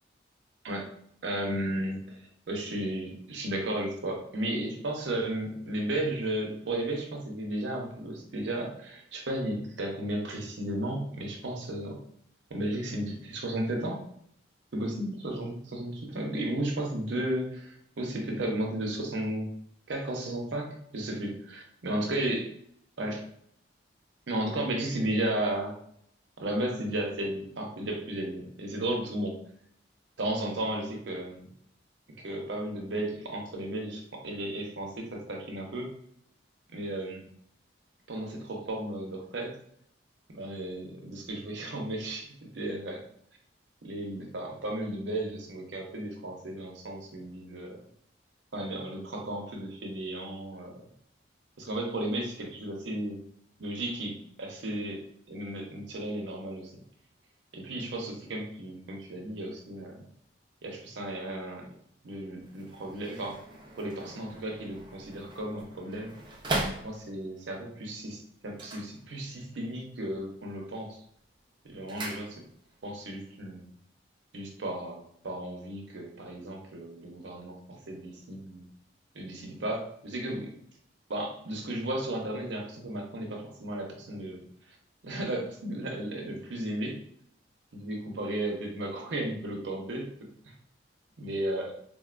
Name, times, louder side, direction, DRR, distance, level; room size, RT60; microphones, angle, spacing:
voice 1, 1.2-12.0 12.5-14.0 14.7-19.5 19.9-22.5 23.0-23.2 24.3-25.8 26.4-29.4 30.2-31.5 32.2-35.9 36.7-37.3 38.1-39.6 40.3-43.0 43.8-47.8 48.5-50.8 51.6-53.2 53.6-55.0 55.3-56.7 57.5-60.1 60.6-61.7 62.0-63.4 63.8-66.1 66.8-71.0 71.6-72.4 72.8-73.8 74.3-78.7 79.1-80.6 81.1-84.8 85.0-87.0 87.7-90.1 90.4-90.5 91.2-91.8, right 1 dB, 75° right, 1 dB, 0.6 m, -34 dB
sound 1, 62.4-67.4 68.5-69.6 69.9-70.4 70.7-72.8 73.1-73.2, right 2 dB, 25° right, 0.5 m, -39 dB
3.6 x 2.1 x 2.4 m, 0.67 s
head